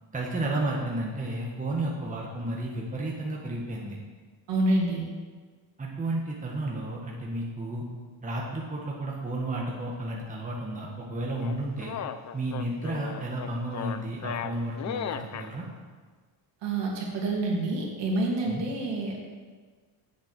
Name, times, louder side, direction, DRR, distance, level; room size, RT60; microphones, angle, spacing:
voice 1, 0.1-4.0 5.8-7.8 8.2-11.9 12.3-15.6 18.5-18.6, right 1 dB, 15° right, -2 dB, 1.5 m, -32 dB
voice 2, 4.5-5.1 16.6-19.2, right 2 dB, 60° right, -1 dB, 2.6 m, -27 dB
sound 1, 11.4-15.5, left 8 dB, 35° left, 0.5 m, -36 dB
8.3 x 6.9 x 7.4 m, 1.5 s
cardioid pair, 130°, 49 cm